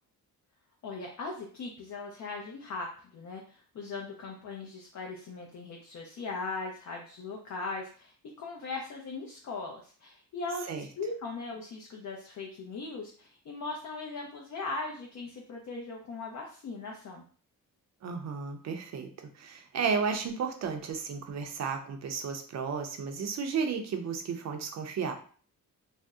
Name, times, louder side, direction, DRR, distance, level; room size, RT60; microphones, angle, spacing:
voice 1, 0.8-2.9 3.1-17.2, left 3 dB, 50° left, 0 dB, 0.6 m, -39 dB
voice 2, 18.0-19.1 19.4-25.1, right 5 dB, 50° right, 5 dB, 0.5 m, -33 dB
2.6 x 2.0 x 3.5 m, 0.43 s
cardioid pair, 130°, 36 cm